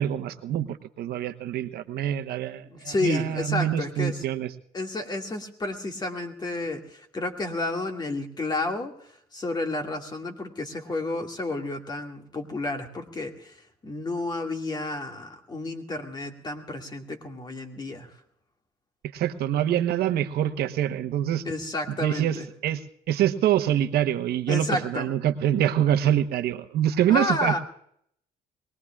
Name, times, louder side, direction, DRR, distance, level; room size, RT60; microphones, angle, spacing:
voice 1, 0.0-4.5 19.1-21.4 22.0-22.4 22.6-22.8 23.1-27.6, right 11 dB, 70° right, 9 dB, 1.1 m, -25 dB
voice 2, 2.7-4.2 4.7-18.2 21.4-22.5 24.5-25.1 27.1-27.6, left 2 dB, 25° left, 4 dB, 2.1 m, -31 dB
23.0 x 20.0 x 2.4 m, 0.68 s
cardioid pair, 110°, 17 cm